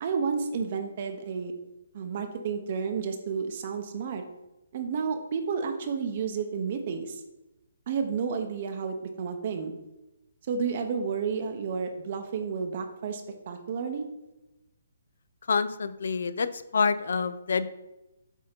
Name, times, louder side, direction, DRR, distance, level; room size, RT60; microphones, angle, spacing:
voice 1, 0.0-1.5 1.9-4.2 4.7-7.2 7.9-9.8 10.5-14.1, right 5 dB, 40° right, 5 dB, 0.7 m, -31 dB
voice 2, 15.5-17.7, left 5 dB, 70° left, 14 dB, 0.5 m, -27 dB
8.1 x 2.8 x 5.1 m, 0.98 s
hypercardioid pair, 160°, 0 cm